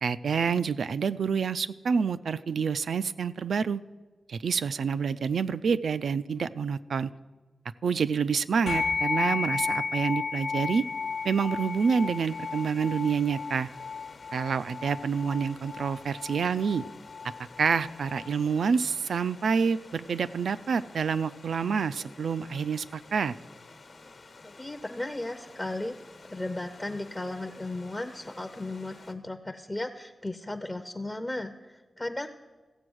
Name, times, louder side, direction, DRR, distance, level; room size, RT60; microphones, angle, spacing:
voice 1, 0.0-3.8 4.3-7.1 7.8-10.8 11.2-13.7 14.3-16.8 17.6-23.3, right 6 dB, 85° right, 14 dB, 0.3 m, -28 dB
sound 1, 8.7-18.3, left 5 dB, 90° left, 0.8 m, -33 dB
Stream / Liquid, 10.2-29.1, left 3 dB, 60° left, 1.1 m, -52 dB
voice 2, 24.4-26.0 26.3-32.3, left 2 dB, 15° left, 7 dB, 0.5 m, -35 dB
15.0 x 7.7 x 6.2 m, 1.3 s
wide cardioid pair, 110°, 0 cm